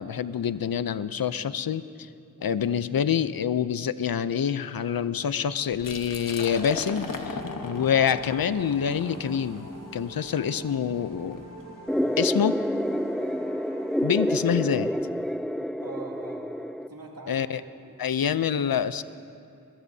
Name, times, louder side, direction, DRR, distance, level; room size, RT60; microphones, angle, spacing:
voice 1, 0.0-2.1 2.4-11.4 12.2-12.6 14.0-14.9 17.3-17.6 18.0-19.0, left 8 dB, 85° left, 14 dB, 0.5 m, -26 dB
Liquid, 5.7-11.5, left 4 dB, 65° left, 1.2 m, -38 dB
sound 1, 7.3-14.9, right 1 dB, 50° right, 4.1 m, -44 dB
sound 2, 11.9-16.9, equal, ahead, 0.4 m, -28 dB
voice 2, 15.8-16.5 16.9-17.5 17.8-18.0, right 2 dB, 75° right, -2 dB, 2.7 m, -43 dB
22.0 x 21.5 x 2.7 m, 2.6 s
wide cardioid pair, 55°, 35 cm